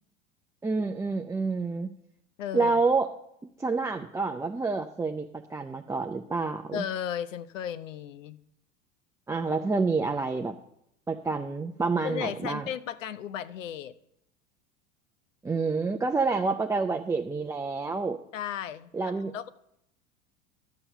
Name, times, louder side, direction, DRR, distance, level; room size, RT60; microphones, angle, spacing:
voice 1, 0.6-1.9 2.5-3.1 3.6-6.9 9.3-10.6 11.1-12.7 15.4-18.2 18.9-19.3, right 4 dB, 10° right, 3 dB, 0.5 m, -28 dB
voice 2, 2.4-2.8 6.7-8.4 12.0-13.9 18.3-18.9 19.2-19.5, left 9 dB, 80° left, 14 dB, 0.8 m, -35 dB
11.5 x 7.0 x 6.8 m, 0.77 s
hypercardioid pair, 85°, 38 cm